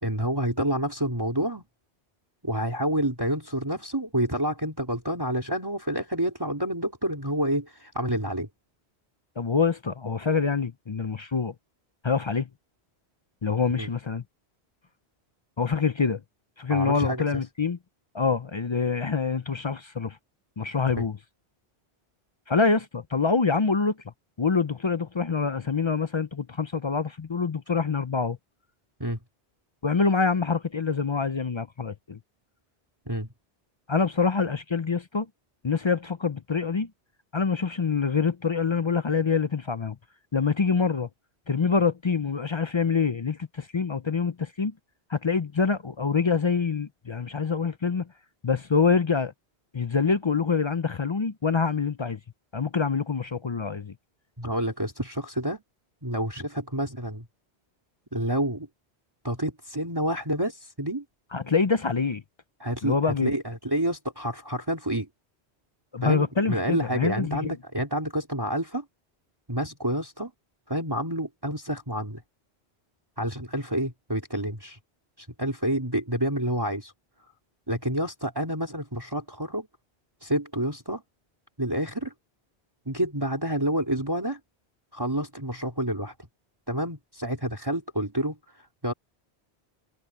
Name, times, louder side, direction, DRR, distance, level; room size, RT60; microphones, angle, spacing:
voice 1, 0.0-1.6 2.4-8.5 13.8-13.9 16.7-17.4 21.0-21.1 29.0-29.2 33.1-33.3 54.4-55.6 56.0-57.3 58.1-58.7 59.2-61.0 62.6-65.1 66.0-68.9 69.5-70.3 70.7-72.2 73.2-74.8 75.2-76.9 77.7-79.7 80.2-81.0 81.6-82.1 82.9-84.4 84.9-86.1 86.7-88.9, right 1 dB, 20° right, 3.6 m, -28 dB
voice 2, 9.4-11.5 12.0-12.5 13.4-14.2 15.6-16.2 16.6-17.8 18.1-20.2 20.6-21.2 22.5-24.0 24.4-28.4 29.8-32.2 33.9-35.3 35.6-36.9 37.3-40.0 40.3-41.1 41.5-44.7 45.1-48.1 48.4-49.3 49.7-52.2 52.5-53.9 61.3-62.2 62.8-63.3 65.9-67.6, left 5 dB, 40° left, 0.4 m, -25 dB
omnidirectional pair, 1.1 m